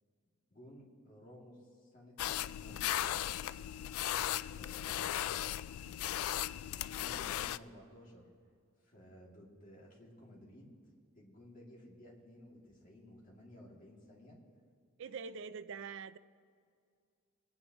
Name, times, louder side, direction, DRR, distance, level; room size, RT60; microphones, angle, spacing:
voice 1, 0.5-3.4 4.5-5.2 6.9-8.3 8.8-10.7 11.2-14.4, equal, 40° left, -4 dB, 2.6 m, -56 dB
sound 1, 2.2-7.6, left 12 dB, 85° left, 0.3 m, -37 dB
voice 2, 15.0-16.2, right 5 dB, 60° right, 14 dB, 0.4 m, -44 dB
22.0 x 9.5 x 3.0 m, 2.3 s
head